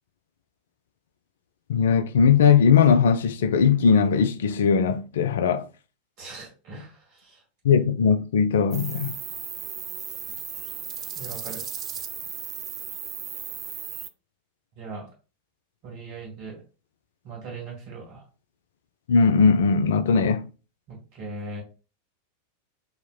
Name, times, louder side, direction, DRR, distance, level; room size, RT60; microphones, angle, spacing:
voice 1, 1.7-5.7 7.6-9.2 19.1-20.4, left 6 dB, 60° left, 0.3 m, -19 dB
voice 2, 6.2-7.4 11.2-11.6 14.8-15.1 15.8-16.6 17.2-18.2 20.9-21.6, right 3 dB, 45° right, 1.8 m, -39 dB
sound 1, 8.7-14.1, right 8 dB, 25° right, 0.3 m, -35 dB
4.2 x 2.8 x 2.3 m
figure-of-eight pair, 90°, 0 cm